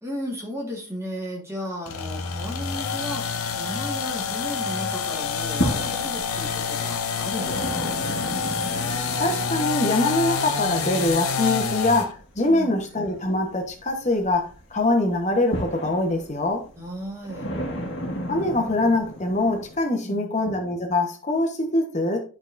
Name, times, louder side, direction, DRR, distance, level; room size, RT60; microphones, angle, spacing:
voice 1, 0.0-7.9 12.5-12.8 16.8-17.5 20.0-20.4, equal, 15° right, -2 dB, 1.7 m, -35 dB
sound 1, 1.9-12.1, left 5 dB, 85° left, 0.8 m, -27 dB
sound 2, 2.7-4.6 4.9-19.8, equal, 55° left, 1.6 m, -35 dB
voice 2, 9.2-16.6 18.3-22.2, left 2 dB, 35° left, 3 dB, 1.1 m, -23 dB
11.5 x 4.0 x 2.6 m, 0.38 s
head